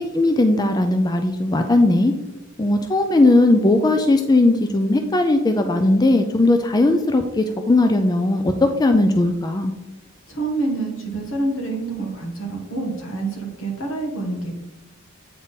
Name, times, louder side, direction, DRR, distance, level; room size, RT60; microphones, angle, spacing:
voice 1, 0.0-2.1 2.6-9.7, left 2 dB, 20° left, 6 dB, 0.4 m, -18 dB
voice 2, 10.3-14.6, right 2 dB, 75° left, 0 dB, 1.8 m, -27 dB
8.5 x 3.7 x 4.0 m, 1.0 s
head